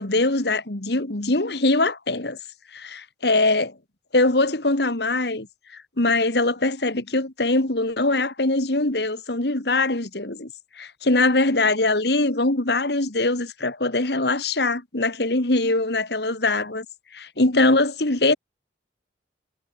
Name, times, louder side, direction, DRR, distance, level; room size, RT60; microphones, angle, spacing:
voice 1, 0.0-2.4 2.7-3.8 4.1-5.5 5.7-10.5 10.8-16.9 17.1-18.4, left 2 dB, 65° left, 2.1 m, -22 dB
head